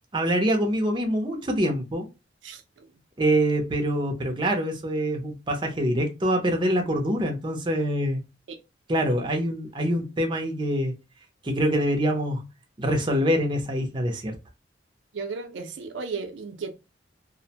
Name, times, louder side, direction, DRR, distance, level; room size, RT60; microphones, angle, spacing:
voice 1, 0.1-2.1 3.2-8.2 8.9-10.9 11.4-12.5 12.8-14.3, equal, 25° right, 0.5 m, -25 dB
voice 2, 2.4-2.9 15.1-16.7, right 4 dB, 85° right, 0.5 m, -35 dB
2.4 x 2.0 x 2.7 m
head